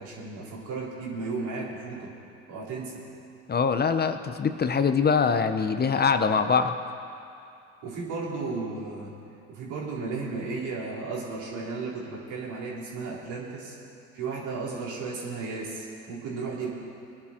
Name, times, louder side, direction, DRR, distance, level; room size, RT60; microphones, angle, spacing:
voice 1, 0.0-2.1 2.5-3.0 7.8-9.1 9.5-13.8 14.1-16.7, right 4 dB, 75° right, -5 dB, 3.7 m, -34 dB
voice 2, 3.5-6.8, left 5 dB, 30° left, 9 dB, 0.8 m, -23 dB
21.0 x 10.5 x 4.4 m, 2.6 s
supercardioid pair, 75°, 31 cm